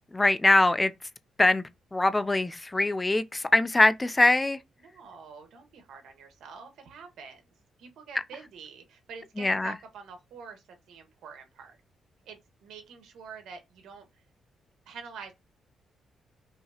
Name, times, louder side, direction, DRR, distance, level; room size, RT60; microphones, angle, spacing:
voice 1, 0.1-0.9 1.4-1.6 1.9-4.6 9.4-9.7, left 2 dB, 15° left, 0.4 m, -22 dB
voice 2, 4.8-7.4 7.8-11.8 12.2-14.1 14.8-15.3, right 6 dB, 85° right, 1.4 m, -46 dB
5.6 x 2.8 x 2.8 m
cardioid pair, 105°, 0 cm